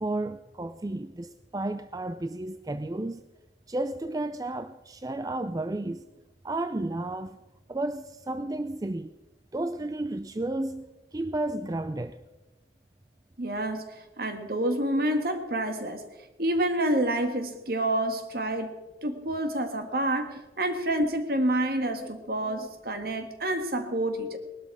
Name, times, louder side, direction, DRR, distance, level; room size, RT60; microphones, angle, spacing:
voice 1, 0.0-3.2 3.7-6.0 6.4-7.4 7.7-9.1 9.5-12.2 21.8-22.1, right 2 dB, 20° right, 0.4 m, -32 dB
voice 2, 13.4-16.0 16.4-18.8 19.0-24.4, right 1 dB, 55° right, 1.7 m, -28 dB
19.5 x 12.5 x 4.8 m
head